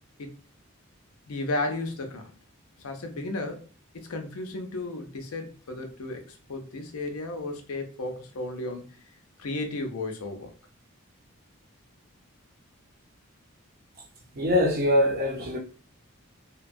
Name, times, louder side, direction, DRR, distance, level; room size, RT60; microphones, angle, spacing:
voice 1, 1.3-2.3 2.8-3.6 3.9-9.0 9.4-10.5, left 2 dB, 90° left, 0.6 m, -34 dB
voice 2, 14.4-15.6, left 1 dB, 45° right, 0.7 m, -23 dB
2.8 x 2.2 x 2.6 m
head